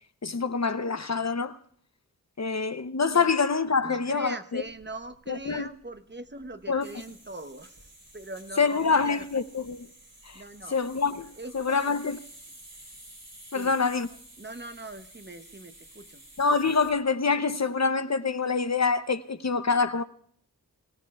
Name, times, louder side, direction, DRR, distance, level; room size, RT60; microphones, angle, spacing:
voice 1, 0.2-1.6 2.4-4.6 5.3-5.7 6.7-6.9 8.6-9.9 10.2-10.4 10.7-12.2 13.5-14.1 16.4-20.0, left 5 dB, 50° left, 0.7 m, -26 dB
voice 2, 3.8-7.9 8.1-9.3 10.3-10.8 11.4-12.0 13.5-13.8 14.4-16.3, right 2 dB, 30° right, 0.9 m, -41 dB
sound 1, 4.6-17.0, right 1 dB, 75° right, 5.0 m, -52 dB
24.0 x 16.5 x 2.3 m
wide cardioid pair, 50°, 35 cm